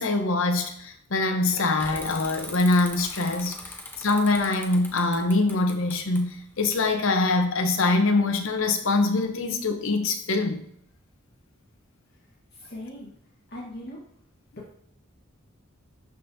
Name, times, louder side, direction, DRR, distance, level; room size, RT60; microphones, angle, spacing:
voice 1, 0.0-10.7, left 2 dB, 70° left, 0.8 m, -24 dB
Bicycle / Mechanisms, 1.8-7.2, left 2 dB, 10° left, 0.8 m, -41 dB
voice 2, 12.5-13.1 13.5-14.0 14.6-14.7, left 1 dB, 55° left, 1.4 m, -39 dB
11.5 x 3.9 x 2.7 m
head